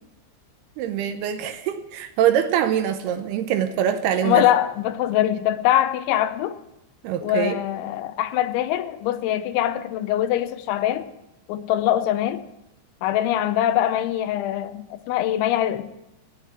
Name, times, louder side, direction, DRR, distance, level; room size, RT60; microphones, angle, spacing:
voice 1, 0.8-4.4 7.0-7.6, right 9 dB, 80° right, 2.4 m, -23 dB
voice 2, 4.2-6.6 7.2-11.1 11.5-12.4 13.0-15.8, left 12 dB, 85° left, 3.2 m, -23 dB
19.0 x 6.8 x 7.4 m
omnidirectional pair, 5.3 m